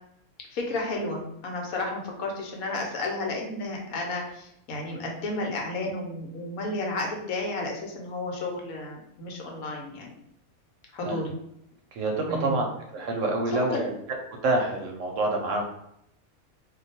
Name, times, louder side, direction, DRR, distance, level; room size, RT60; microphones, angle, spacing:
voice 1, 0.5-10.1 10.9-11.4 12.3-12.6 13.5-13.9, left 2 dB, 80° left, 0 dB, 1.1 m, -32 dB
voice 2, 11.9-12.7 12.9-13.9 14.4-15.7, right 2 dB, 65° right, 1 dB, 0.9 m, -27 dB
2.5 x 2.3 x 4.1 m, 0.77 s
omnidirectional pair, 1.5 m